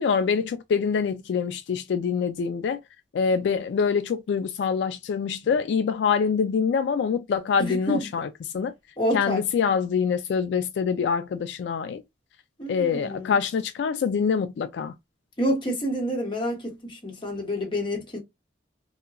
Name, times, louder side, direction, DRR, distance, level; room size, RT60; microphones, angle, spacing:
voice 1, 0.0-2.8 3.1-8.3 8.5-8.7 9.1-12.0 12.7-14.9, left 6 dB, 75° left, 0.3 m, -25 dB
voice 2, 7.6-8.1 9.0-9.4 12.6-13.4 15.4-18.2, equal, 30° left, 1.1 m, -28 dB
2.8 x 2.2 x 2.4 m
head